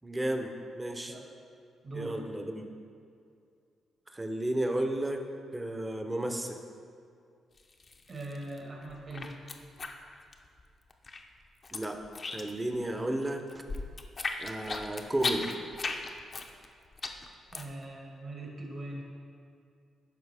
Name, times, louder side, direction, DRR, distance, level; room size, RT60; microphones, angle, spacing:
voice 1, 0.0-1.2 1.9-2.7 4.1-5.2 5.5-6.6 11.7-12.0 12.3-13.4 14.4-15.5, right 1 dB, 20° right, 5 dB, 0.7 m, -33 dB
voice 2, 1.8-2.2 8.1-9.4 17.5-19.1, right 2 dB, 50° right, -1 dB, 1.6 m, -41 dB
sound 1, 7.6-8.6 8.9-10.6 10.9-12.8 13.1-17.8, left 3 dB, 40° left, 0.6 m, -36 dB
11.5 x 4.1 x 3.5 m, 2.4 s
supercardioid pair, 65°, 0 cm